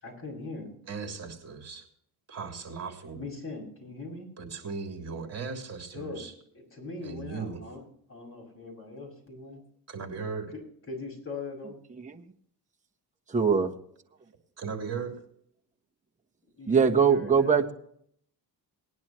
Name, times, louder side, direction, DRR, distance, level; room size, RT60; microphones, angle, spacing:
voice 1, 0.0-0.8 3.2-4.3 5.9-6.3 6.5-7.8 8.1-9.6 10.9-11.8 16.6-17.7, left 3 dB, 35° left, 0 dB, 6.5 m, -40 dB
voice 2, 0.8-1.8 2.3-3.2 4.4-6.3 7.0-7.6 9.9-10.5 14.6-15.1, right 5 dB, 40° right, 3 dB, 3.3 m, -37 dB
voice 3, 11.6-12.0 13.3-13.7 16.7-17.7, right 6 dB, 20° right, 2 dB, 1.2 m, -22 dB
19.5 x 10.5 x 3.1 m, 0.65 s
cardioid pair, 120°, 40 cm